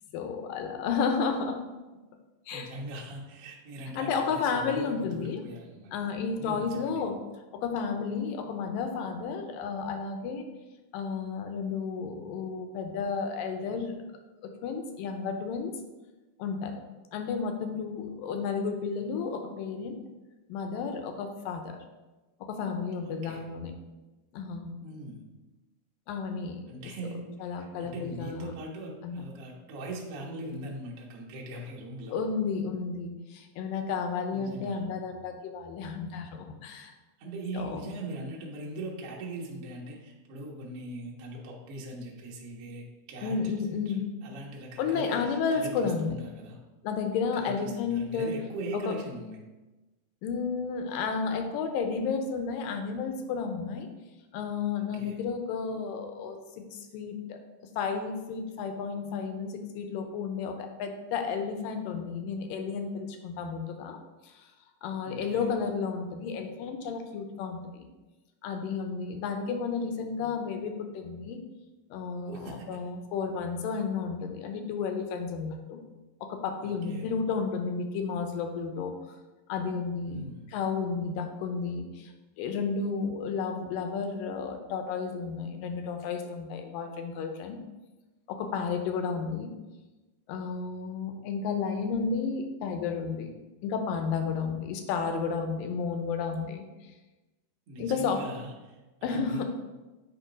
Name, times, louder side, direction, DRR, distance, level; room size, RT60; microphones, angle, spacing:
voice 1, 0.1-1.6 2.5-2.7 4.0-5.4 5.9-7.1 7.6-10.4 10.9-14.0 14.4-15.7 16.4-16.7 17.1-20.0 20.5-21.8 22.4-23.7 24.3-24.7 26.1-26.7 27.4-28.5 29.0-29.2 32.1-36.9 37.5-37.8 43.2-44.1 44.8-46.2 46.8-48.3 48.9-49.0 50.2-53.9 54.3-57.4 57.8-64.0 64.2-64.5 64.8-67.9 68.4-71.4 71.9-75.8 76.2-78.9 79.5-80.2 80.5-87.6 88.3-89.5 90.3-93.3 93.6-96.7 97.8-98.2 99.0-99.5, left 5 dB, 80° left, 5 dB, 2.3 m, -32 dB
voice 2, 2.5-5.9 6.4-7.0 23.0-23.5 24.8-25.2 26.7-27.2 27.6-32.1 34.3-34.8 37.2-46.6 47.3-49.4 54.9-55.2 65.0-65.5 72.2-72.8 76.6-77.1 80.0-80.4 97.7-99.4, right 1 dB, 70° right, -2 dB, 1.4 m, -41 dB
8.5 x 2.9 x 5.0 m, 1.1 s
omnidirectional pair, 4.0 m